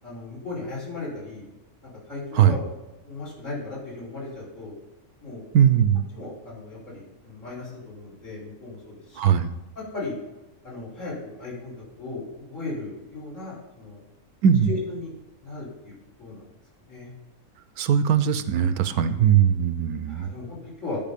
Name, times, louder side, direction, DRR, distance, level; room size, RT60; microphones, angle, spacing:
voice 1, 0.0-1.5 1.8-2.7 3.0-4.7 5.2-5.4 6.1-9.2 9.7-10.1 10.6-11.7 12.0-14.0 14.7-15.1 15.4-16.4 16.9-17.1 18.7-19.2 20.1-21.0, left 3 dB, 60° left, -4 dB, 4.5 m, -36 dB
voice 2, 5.5-6.0 9.2-9.5 14.4-14.7 17.8-20.3, right 8 dB, 85° right, 12 dB, 1.2 m, -20 dB
11.0 x 5.4 x 5.2 m, 1.1 s
omnidirectional pair, 1.5 m